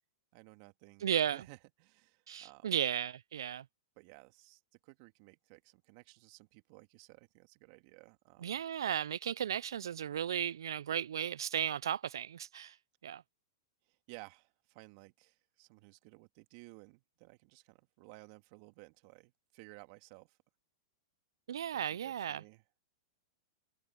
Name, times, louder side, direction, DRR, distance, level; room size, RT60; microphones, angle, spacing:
voice 1, 0.3-2.7 4.0-8.6 13.9-20.4 21.7-22.6, right 26 dB, 50° right, 2.6 m, -57 dB
voice 2, 1.0-1.4 2.3-3.7 8.4-12.8 13.0-13.2 21.5-22.4, right 9 dB, 85° right, 0.3 m, -35 dB
hypercardioid pair, 125°, 2 cm